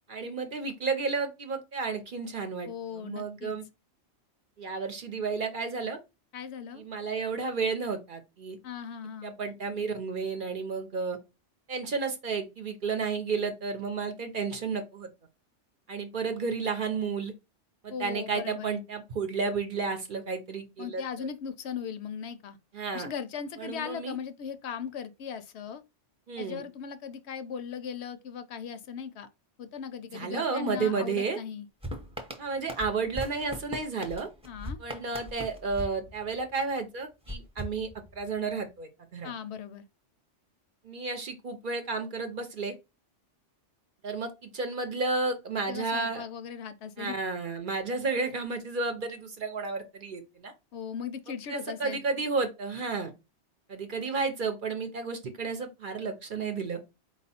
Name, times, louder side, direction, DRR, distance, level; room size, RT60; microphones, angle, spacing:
voice 1, 0.1-3.6 4.6-6.0 6.8-8.6 9.2-11.2 11.7-15.1 15.9-17.3 17.8-21.3 22.7-23.1 23.6-24.1 26.3-26.6 30.1-31.4 32.4-34.3 34.8-39.3 40.8-42.7 44.0-46.2 47.0-50.5 51.3-53.1 53.7-56.8, right 4 dB, 50° right, 0.8 m, -32 dB
voice 2, 2.7-3.6 6.3-6.9 8.6-9.4 17.9-18.8 20.8-22.6 22.9-25.8 26.4-29.3 29.6-31.7 34.5-34.8 39.2-39.9 45.7-47.1 50.7-52.0, left 7 dB, 70° left, 0.8 m, -38 dB
sound 1, 31.8-36.7 37.2-38.5, equal, 5° right, 0.7 m, -41 dB
4.5 x 2.4 x 4.1 m
omnidirectional pair, 1.2 m